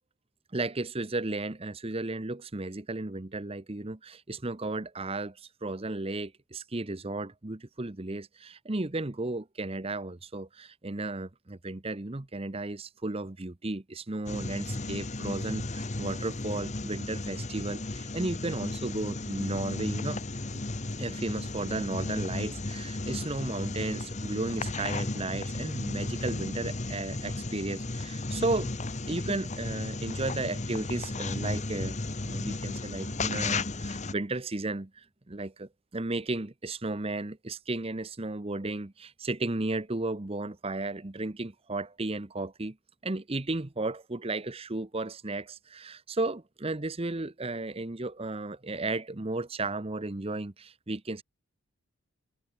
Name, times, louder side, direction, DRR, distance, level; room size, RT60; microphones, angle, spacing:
voice 1, 0.5-20.2 20.5-20.6 21.0-28.7 29.1-42.8 43.0-51.2, right 2 dB, 25° right, 0.8 m, -34 dB
sound 1, 14.3-34.1, left 2 dB, 30° left, 1.2 m, -34 dB
head